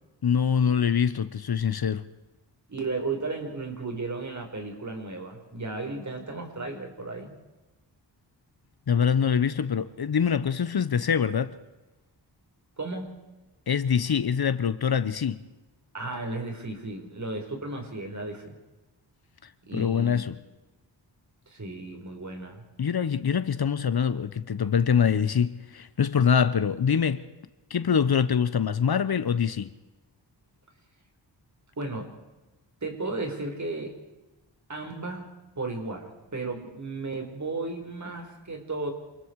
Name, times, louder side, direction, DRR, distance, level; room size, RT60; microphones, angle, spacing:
voice 1, 0.2-2.1 8.9-11.5 13.7-15.4 19.7-20.4 22.8-27.2 27.7-29.7, left 7 dB, 60° left, 1.1 m, -24 dB
voice 2, 2.7-7.3 12.8-13.1 15.9-18.5 19.7-20.2 21.5-22.6 31.8-32.1 32.8-34.0 34.7-35.3 35.6-38.9, right 3 dB, 40° right, 5.4 m, -34 dB
28.0 x 21.0 x 4.9 m
wide cardioid pair, 80°, 43 cm